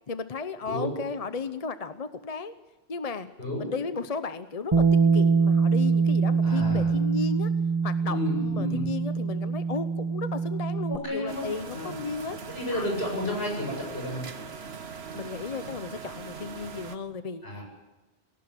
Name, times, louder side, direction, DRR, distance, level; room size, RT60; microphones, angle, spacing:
voice 1, 0.1-2.5 2.9-3.3 3.6-7.5 7.8-12.4 12.7-12.9 15.1-17.5, left 4 dB, 40° left, 11 dB, 0.9 m, -34 dB
voice 2, 3.4-3.7 6.4-6.9 8.1-8.8 10.9-11.9 12.5-14.2 17.4-17.6, left 1 dB, 80° left, 0 dB, 8.1 m, -32 dB
Bass guitar, 4.7-11.0, right 5 dB, 30° right, 1.1 m, -24 dB
sound 1, 11.3-17.0, right 6 dB, 85° right, 1.4 m, -41 dB
19.0 x 18.0 x 9.9 m, 1.1 s
omnidirectional pair, 1.0 m